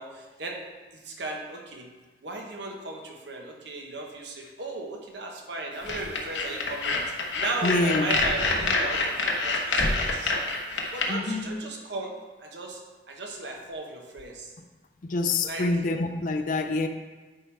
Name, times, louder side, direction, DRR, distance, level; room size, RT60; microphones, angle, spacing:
voice 1, 0.0-1.9 2.2-7.0 7.3-10.5 10.9-12.1 12.4-12.8 13.1-14.5 15.4-15.7, right 2 dB, 70° right, 1 dB, 1.1 m, -36 dB
sound 1, 5.8-11.1, left 3 dB, 75° left, 1.0 m, -26 dB
voice 2, 7.6-8.2 11.1-11.6 15.0-16.9, left 2 dB, 45° left, 6 dB, 0.4 m, -26 dB
9.3 x 4.6 x 3.5 m, 1.3 s
head